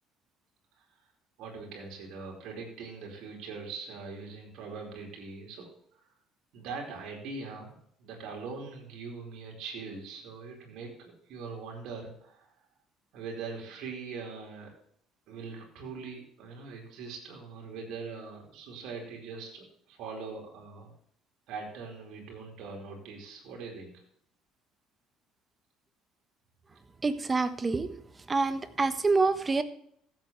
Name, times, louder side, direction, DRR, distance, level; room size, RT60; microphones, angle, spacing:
voice 1, 1.4-5.7 5.9-6.1 6.5-7.7 8.0-12.5 13.1-14.7 15.3-20.9 21.5-24.0, right 4 dB, 70° right, 0 dB, 4.7 m, -42 dB
voice 2, 27.0-27.9 28.3-29.6, right 3 dB, 25° right, 11 dB, 1.3 m, -26 dB
15.0 x 8.8 x 3.3 m, 0.65 s
supercardioid pair, 75°, 0 cm